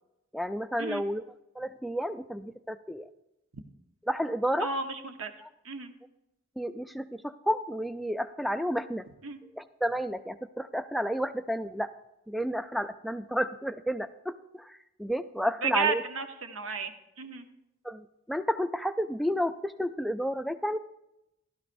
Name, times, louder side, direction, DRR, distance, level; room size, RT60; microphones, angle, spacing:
voice 1, 0.3-1.2 1.6-3.1 4.0-4.7 5.4-5.5 6.6-9.1 9.5-11.9 12.3-16.0 17.8-20.8, equal, ahead, 11 dB, 0.3 m, -31 dB
voice 2, 4.6-5.3 5.6-5.9 9.2-9.4 15.6-16.9 17.2-17.4, right 5 dB, 85° right, 7 dB, 1.0 m, -32 dB
15.0 x 12.0 x 2.6 m, 0.89 s
head